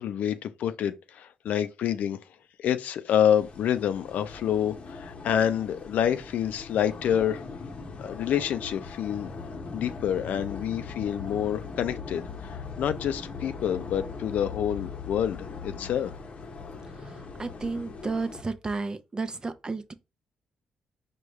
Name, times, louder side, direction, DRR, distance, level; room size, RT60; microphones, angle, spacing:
voice 1, 0.0-2.2 2.6-7.4 8.0-9.3 9.7-16.1, left 9 dB, 75° left, 0.4 m, -27 dB
sound 1, 3.4-18.4, left 4 dB, 50° left, 0.7 m, -40 dB
voice 2, 16.9-19.9, right 3 dB, 30° right, 0.5 m, -33 dB
4.8 x 2.3 x 3.0 m
supercardioid pair, 60°, 3 cm